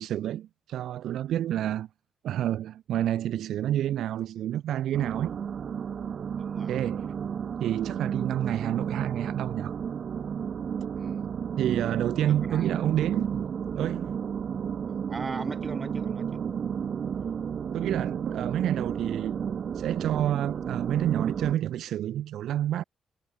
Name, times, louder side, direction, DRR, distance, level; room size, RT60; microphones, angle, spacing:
voice 1, 0.0-1.9 2.2-5.4 6.7-7.1 7.6-9.8 11.6-13.5 13.8-14.1 17.7-19.5 19.7-22.8, right 11 dB, 85° right, 0.8 m, -29 dB
sound 1, 4.9-21.5, right 7 dB, 55° right, 0.5 m, -32 dB
voice 2, 6.5-6.8 10.9-11.3 12.3-12.7 15.1-16.6, right 4 dB, 30° right, 4.3 m, -39 dB
cardioid pair, 100°, 0 cm